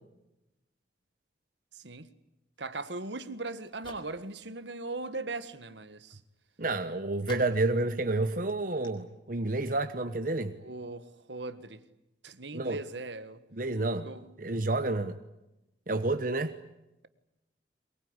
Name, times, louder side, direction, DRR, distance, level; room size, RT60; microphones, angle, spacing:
voice 1, 2.6-6.2 10.6-11.8 12.2-13.4 14.0-14.2, right 3 dB, 75° right, 1.6 m, -39 dB
sound 1, 3.4-4.5 4.9-5.4 6.7-7.8 8.1-8.2 8.5-8.6 8.8-8.9, left 2 dB, 25° left, 4.2 m, -52 dB
voice 2, 6.6-10.5 12.5-12.8 13.5-14.1 14.4-15.2 15.9-16.5, right 2 dB, 45° right, 1.1 m, -29 dB
23.0 x 22.0 x 9.8 m
head